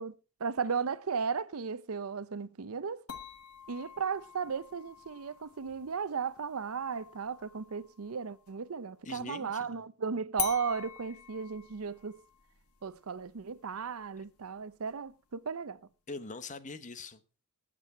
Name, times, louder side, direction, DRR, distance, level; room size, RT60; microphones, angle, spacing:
voice 1, 0.0-3.0 3.7-12.2 12.8-15.8, right 5 dB, 75° right, 0.6 m, -35 dB
sound 1, 3.1-8.7 10.4-15.4, left 10 dB, 90° left, 1.5 m, -45 dB
voice 2, 9.0-9.8 14.2-14.3 16.1-17.2, left 3 dB, 35° left, 1.0 m, -43 dB
19.5 x 7.6 x 4.4 m
head